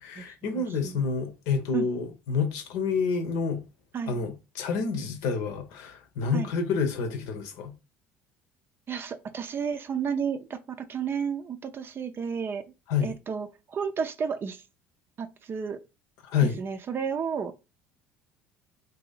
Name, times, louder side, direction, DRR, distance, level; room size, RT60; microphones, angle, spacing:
voice 1, 0.0-3.6 4.1-7.7 12.9-13.1 16.2-16.6, left 5 dB, 70° left, 0.8 m, -28 dB
voice 2, 0.5-1.0 1.7-1.9 3.9-4.2 6.3-6.5 8.9-12.6 13.0-14.6 15.2-15.8 16.4-17.5, right 6 dB, 40° right, 0.5 m, -32 dB
2.8 x 2.7 x 3.9 m
hypercardioid pair, 65°, 6 cm